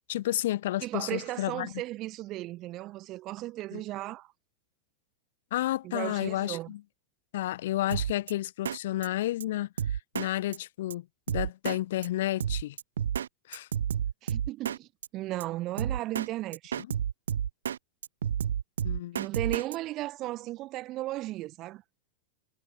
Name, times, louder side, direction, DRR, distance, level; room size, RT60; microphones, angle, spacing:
voice 1, 0.0-1.7 3.7-3.8 5.5-6.8 7.3-12.8 13.5-13.7 18.8-19.2, left 14 dB, 55° left, 1.0 m, -31 dB
voice 2, 0.8-4.3 5.8-6.7 14.2-16.8 19.1-21.8, right 17 dB, 35° right, 1.2 m, -35 dB
Drum kit, 7.9-8.3 8.7-8.8 9.0-9.1 9.4-9.5 9.8-10.3 10.5-10.6 10.9-11.0 11.3-11.8 12.0-12.1 12.4-13.3 13.5-14.8 15.0-15.1 15.4-15.5 15.8-16.3 16.5-17.8 18.0-19.8, right 8 dB, 65° right, 0.4 m, -30 dB
figure-of-eight pair, 90°, 0 cm